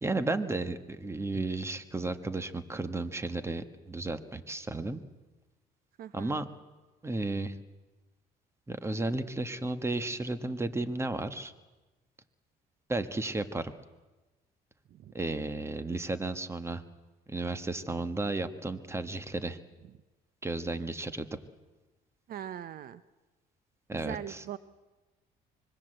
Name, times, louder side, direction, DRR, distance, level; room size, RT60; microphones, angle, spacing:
voice 1, 0.0-5.0 6.1-6.5 7.0-7.6 8.7-11.5 12.9-13.7 15.1-16.8 17.3-19.6 20.4-21.4 23.9-24.4, right 2 dB, 15° right, 11 dB, 1.5 m, -33 dB
voice 2, 6.0-6.4 14.9-15.1 22.3-23.0 23.9-24.6, right 10 dB, 60° right, 15 dB, 0.8 m, -41 dB
25.0 x 22.0 x 7.9 m, 1.2 s
cardioid pair, 110°, 17 cm